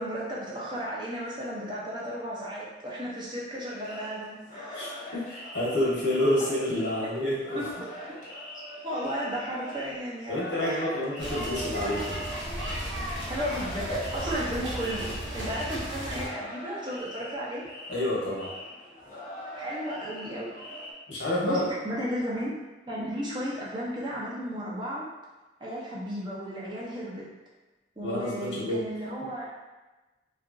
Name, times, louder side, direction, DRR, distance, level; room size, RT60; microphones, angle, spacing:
voice 1, 0.0-4.8 7.5-7.9 8.8-10.9 13.3-17.6 19.5-20.5 21.1-22.5 22.9-25.0 25.6-27.3 28.0-29.5, equal, 25° right, -5 dB, 0.6 m, -34 dB
sound 1, 3.7-20.9, equal, 45° left, 0.5 m, -42 dB
voice 2, 4.7-7.6 10.3-12.2 17.9-18.5 21.1-21.7 28.0-28.8, left 1 dB, 80° left, -6 dB, 1.0 m, -28 dB
sound 2, 11.2-16.3, equal, 80° right, 0.9 m, -34 dB
2.8 x 2.4 x 2.5 m, 1.1 s
head